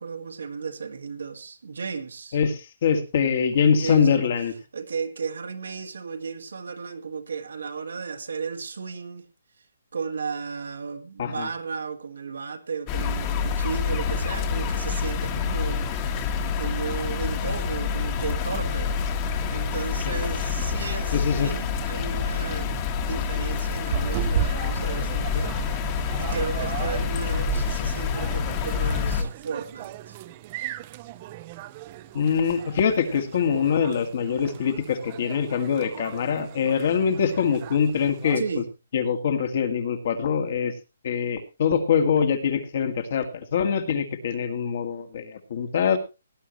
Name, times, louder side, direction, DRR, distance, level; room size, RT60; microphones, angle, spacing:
voice 1, 0.0-2.4 3.7-4.3 4.7-9.3 9.9-19.0 19.5-30.2 38.4-38.7, right 5 dB, 80° right, 5 dB, 2.0 m, -34 dB
voice 2, 2.3-4.5 11.2-11.5 20.2-20.3 21.1-21.5 32.1-38.4 38.9-40.7 41.0-46.0, left 7 dB, 50° left, 6 dB, 2.0 m, -24 dB
sound 1, 12.9-29.2, left 6 dB, 25° left, 1.6 m, -27 dB
sound 2, 23.9-38.4, right 10 dB, 30° right, 0.7 m, -35 dB
18.5 x 10.5 x 3.1 m, 0.28 s
hypercardioid pair, 165°, 0 cm